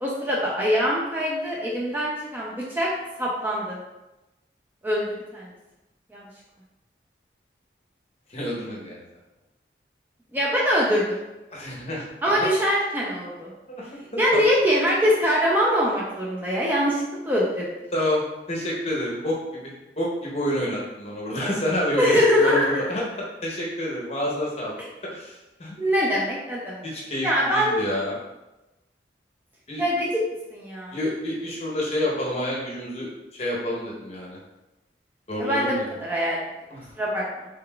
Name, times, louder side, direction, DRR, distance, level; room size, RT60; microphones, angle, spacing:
voice 1, 0.0-2.9 3.2-3.8 4.8-5.5 6.1-6.3 10.3-11.2 12.2-13.5 14.2-17.7 22.0-22.8 25.8-26.8 27.2-27.8 29.8-30.2 30.5-30.9 35.4-36.4 37.0-37.2, equal, 10° right, -5 dB, 0.4 m, -23 dB
voice 2, 8.3-9.0 11.5-12.1 12.4-12.5 13.7-13.9 14.3-14.4 17.9-18.2 18.5-23.0 23.4-24.8 25.1-25.7 26.8-28.2 29.7-29.8 30.9-33.1 33.4-34.4 35.3-35.8 36.7-36.9, left 1 dB, 35° left, -4 dB, 0.7 m, -28 dB
3.8 x 3.3 x 2.2 m, 1.0 s
head